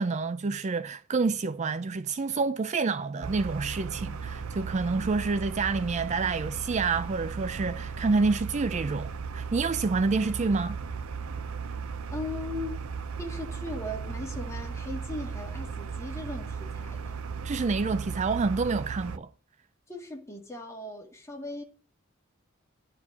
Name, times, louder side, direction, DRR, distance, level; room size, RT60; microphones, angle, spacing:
voice 1, 0.0-10.8 17.4-19.3, right 4 dB, 35° right, 0.4 m, -28 dB
sound 1, 3.2-19.2, right 5 dB, 90° right, 0.6 m, -36 dB
voice 2, 12.1-12.8 13.2-17.1 19.9-21.6, left 2 dB, 15° left, 2.2 m, -38 dB
11.0 x 4.5 x 6.9 m
head